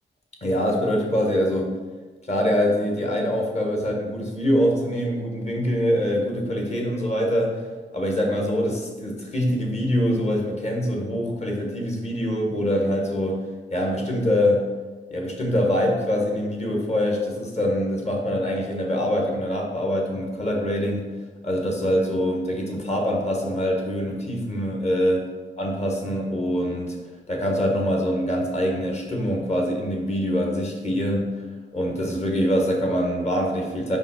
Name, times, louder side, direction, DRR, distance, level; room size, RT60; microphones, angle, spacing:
voice 1, 0.4-1.7 2.3-7.6 7.9-13.4 13.7-14.6 15.1-21.1 21.4-25.2 25.6-27.0 27.3-31.3 31.7-34.0, equal, 35° left, 0 dB, 1.3 m, -24 dB
5.2 x 4.7 x 4.2 m, 1.3 s
wide cardioid pair, 120°, 18 cm